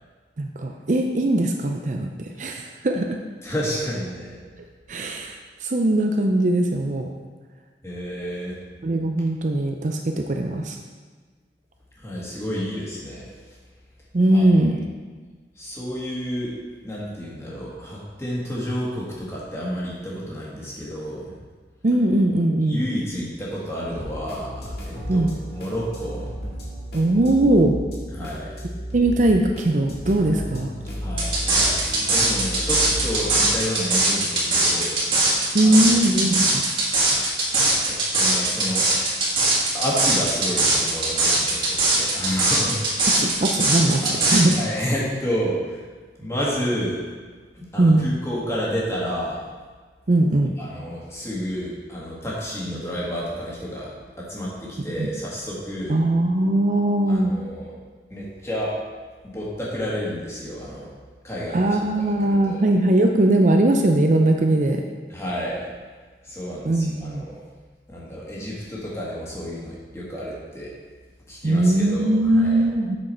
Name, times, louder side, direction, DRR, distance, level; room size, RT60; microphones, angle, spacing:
voice 1, 0.4-2.1 2.4-3.2 4.9-7.1 8.8-10.8 14.1-14.8 21.8-22.8 25.1-25.4 26.9-27.8 28.9-30.7 35.5-36.6 43.2-44.5 47.8-48.2 50.1-50.5 55.0-55.1 55.9-57.4 61.5-64.8 66.6-67.3 71.4-73.0, right 1 dB, 45° right, 3 dB, 0.5 m, -20 dB
voice 2, 3.4-4.4 7.8-8.6 12.0-13.2 14.3-14.7 15.6-16.5 16.8-21.3 22.7-25.3 25.6-26.3 28.1-28.6 31.0-35.0 35.6-35.9 36.8-37.1 37.8-38.9 39.7-43.3 44.0-45.8 46.2-47.0 47.5-49.4 50.6-56.0 57.1-57.7 58.1-58.8 59.3-60.9 61.2-62.1 62.5-62.6 65.1-65.7 66.2-67.4 67.9-70.7 71.3-72.7, equal, 15° left, -6 dB, 1.8 m, -30 dB
sound 1, 23.8-33.6, equal, 70° left, 1.8 m, -33 dB
sound 2, 31.2-44.5, right 2 dB, 30° right, 1.9 m, -20 dB
7.6 x 6.2 x 4.3 m, 1.5 s
head